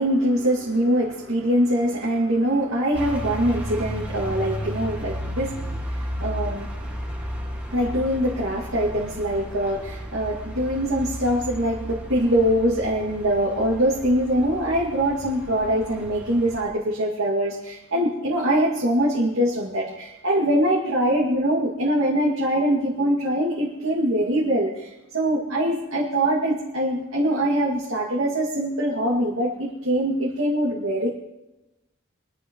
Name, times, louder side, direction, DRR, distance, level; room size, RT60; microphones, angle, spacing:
voice 1, 0.0-6.8 7.2-31.1, right 1 dB, 75° right, -5 dB, 2.3 m, -23 dB
sound 1, 2.9-16.7, equal, 5° right, 1.9 m, -34 dB
24.0 x 11.0 x 3.1 m, 1.0 s
head